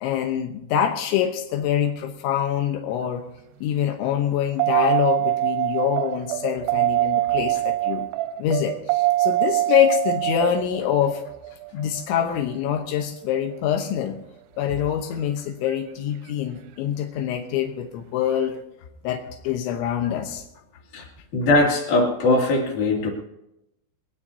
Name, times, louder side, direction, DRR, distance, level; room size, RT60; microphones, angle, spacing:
voice 1, 0.0-3.2 3.6-8.1 8.4-11.2 11.7-14.2 14.6-18.6 19.0-20.5, left 10 dB, 90° left, 4 dB, 3.4 m, -25 dB
sound 1, 4.6-13.0 15.7-15.8, right 17 dB, 90° right, 3.1 m, -24 dB
voice 2, 21.3-23.1, left 2 dB, 55° left, 0 dB, 4.2 m, -20 dB
20.5 x 19.0 x 2.8 m, 0.86 s
omnidirectional pair, 5.2 m